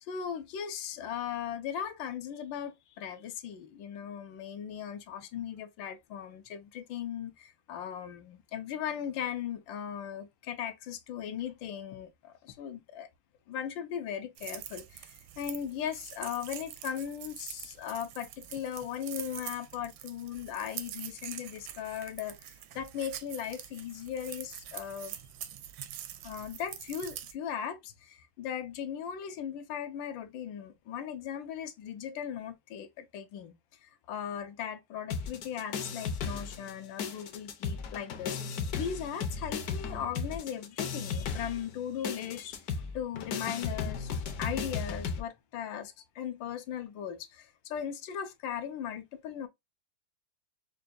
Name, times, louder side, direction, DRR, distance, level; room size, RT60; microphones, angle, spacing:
voice 1, 0.0-13.1 13.5-25.2 26.2-33.5 33.8-42.6 42.9-44.1 44.4-49.5, left 9 dB, 80° left, 1.3 m, -38 dB
sound 1, 14.4-27.3, right 11 dB, 80° right, 1.3 m, -45 dB
sound 2, 35.1-36.7 37.0-45.2, left 5 dB, 65° left, 1.0 m, -35 dB
5.6 x 2.2 x 2.5 m
omnidirectional pair, 2.1 m